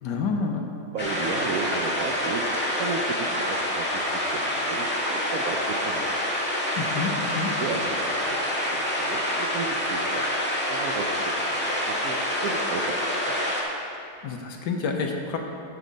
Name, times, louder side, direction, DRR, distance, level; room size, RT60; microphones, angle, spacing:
voice 1, 0.0-0.6 6.8-7.5 14.2-15.4, left 4 dB, 65° left, 2 dB, 1.3 m, -28 dB
voice 2, 0.9-2.4 2.8-6.1 7.6-10.3 10.7-13.4, right 4 dB, 75° right, 1 dB, 0.8 m, -34 dB
sound 1, 1.0-13.6, left 1 dB, 5° left, 1.5 m, -27 dB
11.5 x 7.4 x 4.0 m, 2.5 s
omnidirectional pair, 2.2 m